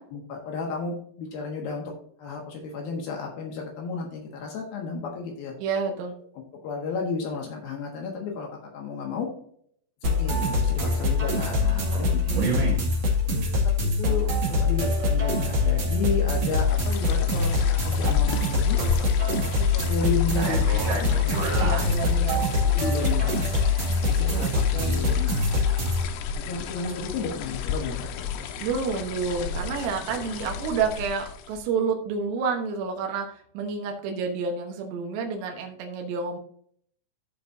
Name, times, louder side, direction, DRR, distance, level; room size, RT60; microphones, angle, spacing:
voice 1, 0.1-1.9 2.2-5.5 6.6-9.3 10.0-12.2 13.3-13.5 13.8-18.8 19.3-21.7 22.7-23.5 24.0-25.5 26.3-28.4, left 5 dB, 65° left, 1 dB, 3.0 m, -33 dB
voice 2, 5.6-6.2 11.6-12.8 21.1-22.4 24.1-24.5 24.7-25.0 28.6-36.4, right 5 dB, 80° right, 2 dB, 3.3 m, -30 dB
sound 1, 10.0-26.0, left 3 dB, 45° right, 2.7 m, -23 dB
sound 2, 16.3-31.7, left 7 dB, 90° left, 3.2 m, -35 dB
14.5 x 5.1 x 2.7 m, 0.63 s
omnidirectional pair, 5.0 m